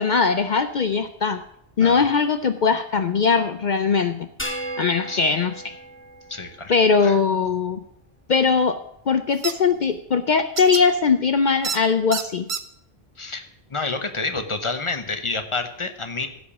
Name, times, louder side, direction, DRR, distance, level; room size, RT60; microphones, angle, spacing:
voice 1, 0.0-1.4 1.8-4.3 4.8-5.8 6.7-7.8 8.3-8.8 9.1-12.5, left 5 dB, 55° left, 9 dB, 0.6 m, -20 dB
sound 1, 4.4-7.0, right 1 dB, 10° left, 1.3 m, -35 dB
voice 2, 6.3-6.7 7.0-7.2 13.2-16.3, left 3 dB, 30° left, 7 dB, 1.0 m, -29 dB
sound 2, 9.4-9.5 10.6-10.8 11.6-11.8 12.1-12.6, right 6 dB, 40° right, 0.5 m, -27 dB
15.5 x 5.1 x 7.0 m, 0.73 s
omnidirectional pair, 1.1 m